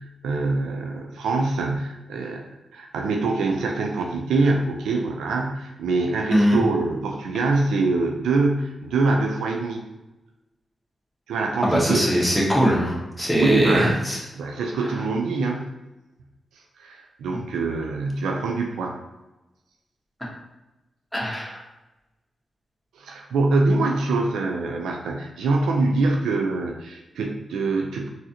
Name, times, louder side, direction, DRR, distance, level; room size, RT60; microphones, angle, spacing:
voice 1, 0.0-9.8 11.3-12.0 13.4-14.1 14.3-15.7 16.8-19.0 22.9-28.1, right 3 dB, 85° right, 2 dB, 0.4 m, -24 dB
voice 2, 6.3-6.6 11.6-14.2 21.1-21.6, equal, 5° left, -4 dB, 1.4 m, -21 dB
3.9 x 2.7 x 2.9 m, 1.0 s
supercardioid pair, 40°, 0 cm